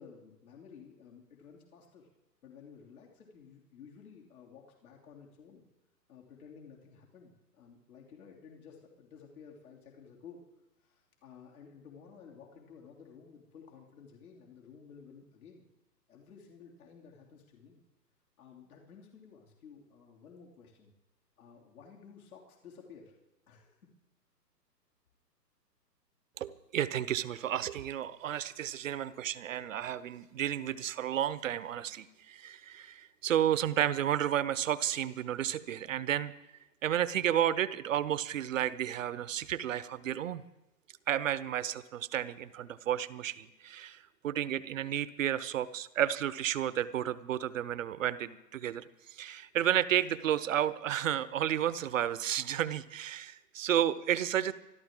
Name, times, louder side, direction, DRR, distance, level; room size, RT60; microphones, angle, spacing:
voice 1, 0.0-2.1 2.4-5.6 6.1-10.4 10.8-15.6 16.1-17.8 18.4-20.9 21.4-23.1 23.5-23.8, left 6 dB, 60° left, -1 dB, 3.2 m, -54 dB
voice 2, 26.4-36.3 36.8-40.4 41.1-54.5, right 11 dB, 50° right, 16 dB, 0.9 m, -32 dB
25.5 x 13.0 x 3.7 m, 0.96 s
hypercardioid pair, 135°, 50 cm